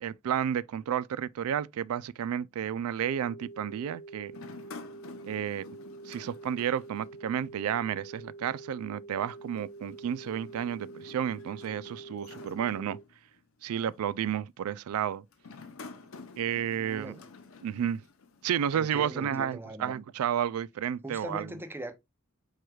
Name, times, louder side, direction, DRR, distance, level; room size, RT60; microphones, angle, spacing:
voice 1, 0.0-4.3 5.2-5.7 6.0-13.0 13.6-15.2 16.4-17.2 17.6-18.0 18.4-21.5, right 9 dB, 85° right, 0.3 m, -31 dB
sound 1, 3.0-13.0, right 3 dB, 45° left, 1.2 m, -47 dB
sound 2, 4.3-7.7 7.9-8.0 9.2-13.4 14.1-14.4 15.3-18.6, left 4 dB, 70° left, 0.7 m, -50 dB
voice 2, 16.8-17.2 18.7-20.0 21.0-21.9, equal, 10° right, 0.6 m, -41 dB
4.7 x 4.6 x 2.3 m
head